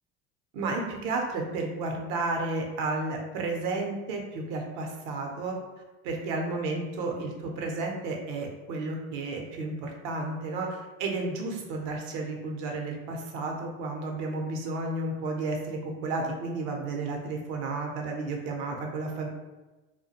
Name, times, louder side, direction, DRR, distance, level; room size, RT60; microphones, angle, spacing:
voice 1, 0.5-5.6 6.0-19.3, right 3 dB, 75° right, 1 dB, 0.7 m, -32 dB
2.4 x 2.2 x 2.7 m, 1.1 s
hypercardioid pair, 80°, 35 cm